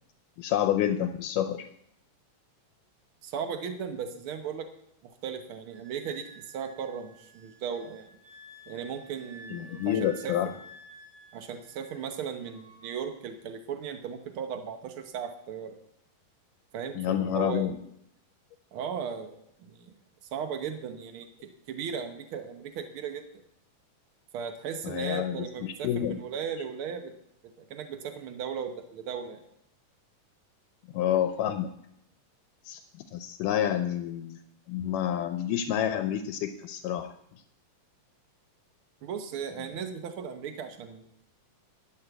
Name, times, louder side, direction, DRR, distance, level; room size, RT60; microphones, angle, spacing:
voice 1, 0.4-1.7 9.5-10.5 17.0-17.8 24.8-26.2 30.9-31.7 32.6-32.8 33.1-34.4 34.7-37.1, left 10 dB, 80° left, 9 dB, 2.1 m, -28 dB
voice 2, 3.2-4.7 5.0-8.1 8.7-10.6 11.3-15.7 16.7-17.7 18.7-19.9 20.3-21.3 21.7-23.2 24.3-27.1 27.7-29.4 39.0-41.1, right 7 dB, 90° right, 7 dB, 1.1 m, -36 dB
Wind instrument woodwind instrument, 5.7-12.1 12.4-13.1, right 1 dB, 30° right, 6.7 m, -52 dB
12.0 x 7.1 x 8.0 m, 0.75 s
omnidirectional pair, 3.9 m